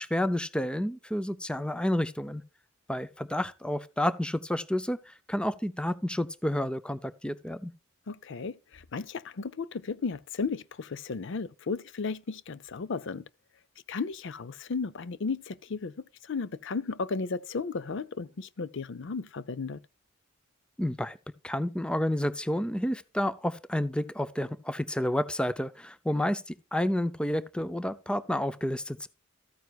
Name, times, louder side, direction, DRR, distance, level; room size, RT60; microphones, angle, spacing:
voice 1, 0.0-2.4 2.9-7.7 20.8-21.2 21.4-29.1, left 1 dB, 5° left, 0.5 m, -30 dB
voice 2, 8.1-13.2 13.9-19.8, left 4 dB, 65° left, 0.5 m, -34 dB
13.5 x 9.3 x 2.3 m
head